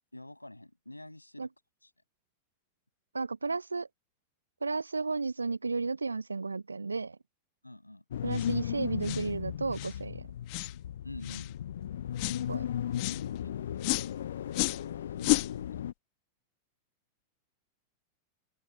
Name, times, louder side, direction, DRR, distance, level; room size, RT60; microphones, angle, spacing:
voice 1, 0.1-1.5 1.8-1.9 7.6-8.0 11.0-11.5 13.3-14.0 15.2-15.9, left 1 dB, 85° left, 7.7 m, -48 dB
voice 2, 3.1-3.9 4.6-7.2 8.2-10.2 12.5-12.7, right 4 dB, 80° right, 1.3 m, -33 dB
sound 1, 8.1-15.9, left 10 dB, 60° left, 0.6 m, -36 dB
sound 2, 8.3-8.5 9.0-9.3 9.7-10.0 10.5-10.7 11.2-11.5 12.2-12.4 12.9-13.2 13.8-14.1 14.5-14.8 15.2-15.5, left 40 dB or more, 45° left, 1.5 m, -31 dB
open air
figure-of-eight pair, 90°, 0 cm